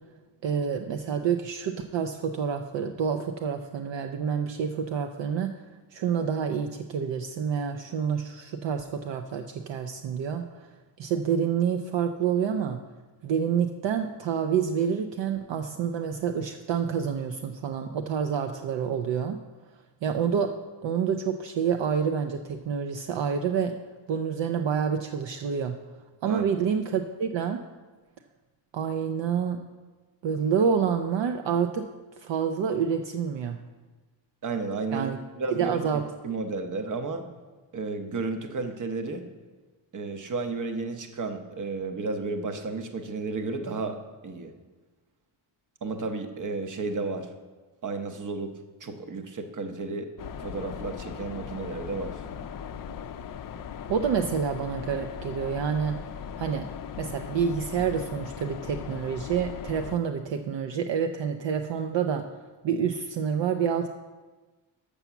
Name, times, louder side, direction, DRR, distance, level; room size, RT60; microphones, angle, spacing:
voice 1, 0.4-5.5 5.9-10.7 11.0-12.8 13.2-19.4 20.0-20.5 20.8-23.7 24.1-25.8 26.2-27.6 28.7-29.6 30.2-31.9 32.2-33.6 34.9-35.2 35.5-36.0 53.9-56.0 56.4-56.6 57.0-62.2 62.6-63.9, right 7 dB, 65° right, 6 dB, 0.6 m, -28 dB
voice 2, 34.4-37.3 37.7-39.2 39.9-44.0 44.2-44.5 45.8-47.3 47.8-48.5 48.8-50.1 50.4-52.2, right 3 dB, 40° right, 7 dB, 0.9 m, -32 dB
sound 1, 50.2-60.0, left 7 dB, 45° left, 0.4 m, -39 dB
7.0 x 5.8 x 7.0 m, 1.3 s
cardioid pair, 120°, 48 cm